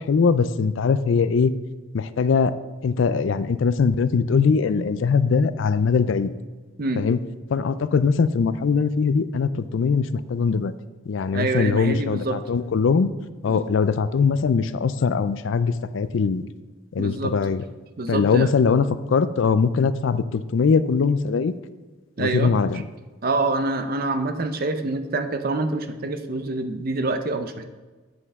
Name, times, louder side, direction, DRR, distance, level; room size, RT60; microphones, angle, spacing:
voice 1, 0.0-1.5 1.9-2.5 2.8-6.3 7.0-7.2 7.5-10.0 10.3-10.7 11.1-13.1 13.4-16.4 17.0-17.6 18.1-18.9 19.1-21.5 22.2-22.8, left 5 dB, 65° left, 14 dB, 0.4 m, -21 dB
voice 2, 11.3-12.4 13.5-13.7 17.0-17.3 18.0-18.5 22.2-22.8 23.2-27.7, right 2 dB, 45° right, 9 dB, 0.6 m, -26 dB
7.8 x 7.8 x 3.6 m, 1.3 s
head